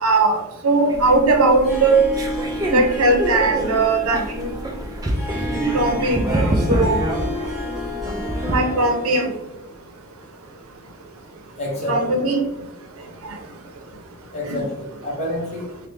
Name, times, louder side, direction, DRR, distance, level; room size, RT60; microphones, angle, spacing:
voice 1, 0.0-2.0 2.7-4.5 5.7-7.0 8.4-9.3 11.9-12.4 14.5-14.6, right 3 dB, 85° right, 4 dB, 0.6 m, -19 dB
sound 1, 0.9-8.6, right 1 dB, 15° right, 0.3 m, -26 dB
Harp, 1.4-9.3, left 2 dB, ahead, 0.8 m, -32 dB
voice 2, 11.6-12.3 14.3-15.7, left 1 dB, 30° left, -5 dB, 1.1 m, -27 dB
3.1 x 2.5 x 3.2 m, 0.93 s
head